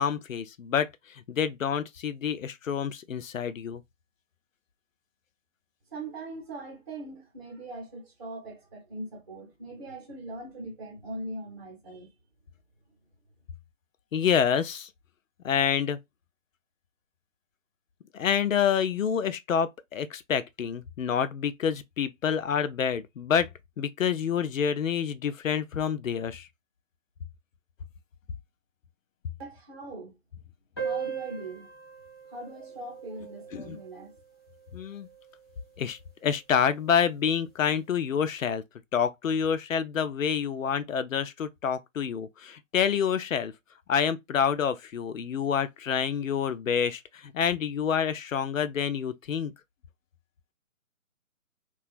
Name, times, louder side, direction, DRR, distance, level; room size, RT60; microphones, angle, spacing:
voice 1, 0.0-3.8 14.1-14.9 15.4-16.0 18.1-23.5 23.8-26.5 33.5-33.8 34.7-35.1 35.8-38.6 38.9-43.5 43.9-49.5, left 7 dB, 70° left, 0.5 m, -28 dB
voice 2, 5.9-12.1 29.4-30.1 30.8-31.7 32.3-34.1, right 2 dB, 25° right, 0.9 m, -41 dB
sound 1, 30.8-35.7, right 6 dB, 20° left, 0.5 m, -39 dB
2.8 x 2.4 x 2.4 m
figure-of-eight pair, 145°, 42 cm